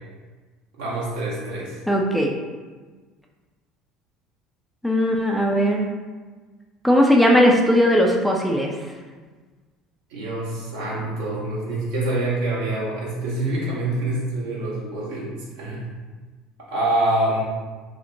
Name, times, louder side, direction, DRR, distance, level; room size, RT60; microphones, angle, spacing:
voice 1, 0.8-1.8 10.1-15.9 16.7-17.4, right 1 dB, 70° right, -5 dB, 0.9 m, -26 dB
voice 2, 1.9-2.3 4.8-5.9 6.8-8.7, equal, ahead, 0 dB, 0.4 m, -18 dB
2.9 x 2.0 x 2.6 m, 1.4 s
figure-of-eight pair, 65°, 0 cm